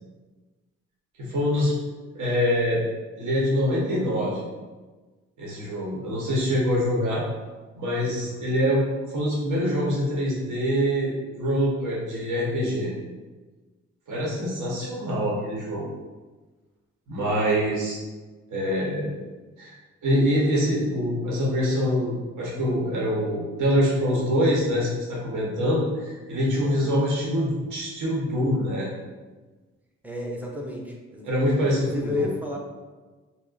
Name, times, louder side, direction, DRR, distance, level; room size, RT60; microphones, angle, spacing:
voice 1, 1.2-1.7 2.1-2.9 3.1-4.5 5.4-7.2 7.7-12.9 14.1-15.8 17.1-18.0 18.5-19.1 19.6-19.7 20.0-28.9 31.2-32.3, equal, 70° right, -5 dB, 0.9 m, -25 dB
voice 2, 8.1-8.5 26.3-27.0 30.0-31.4 31.6-32.6, left 2 dB, 5° right, -1 dB, 0.6 m, -33 dB
2.4 x 2.1 x 3.8 m, 1.3 s
cardioid pair, 70°, 31 cm